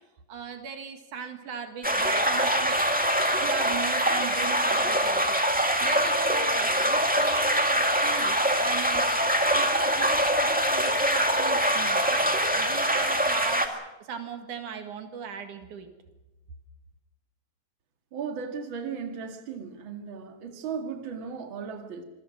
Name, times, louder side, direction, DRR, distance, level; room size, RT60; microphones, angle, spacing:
voice 1, 0.3-2.8 3.4-5.4 5.8-13.8 14.1-15.9, right 7 dB, 80° right, 6 dB, 3.3 m, -38 dB
sound 1, 1.8-13.7, equal, 5° right, 1.4 m, -24 dB
voice 2, 18.1-22.0, right 6 dB, 45° right, 5 dB, 2.6 m, -36 dB
26.5 x 21.0 x 6.4 m, 1.0 s
omnidirectional pair, 3.5 m